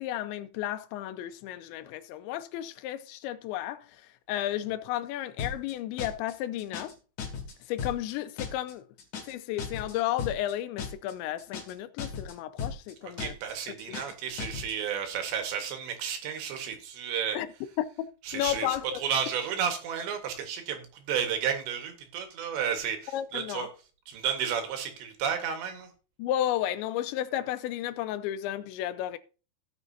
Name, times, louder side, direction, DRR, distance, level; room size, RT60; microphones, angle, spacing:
voice 1, 0.0-6.9 7.7-8.8 9.3-13.3 17.3-17.5 17.8-17.9 18.3-19.0 23.1-23.7 26.2-29.2, left 12 dB, 90° left, 3.0 m, -33 dB
sound 1, 5.4-5.7 6.0-6.3 6.6-6.9 7.2-7.5 7.8-8.1 8.4-8.7 9.0-9.3 9.6-9.9 10.2-10.5 10.8-11.1 11.4-11.7 12.0-12.3 12.6-12.9 13.2-13.5 13.8-14.1 14.4-14.7, left 6 dB, 50° left, 3.3 m, -36 dB
voice 2, 13.0-17.4 18.3-23.7 24.1-25.9, right 8 dB, 75° right, 3.8 m, -32 dB
17.5 x 6.5 x 2.8 m
omnidirectional pair, 5.1 m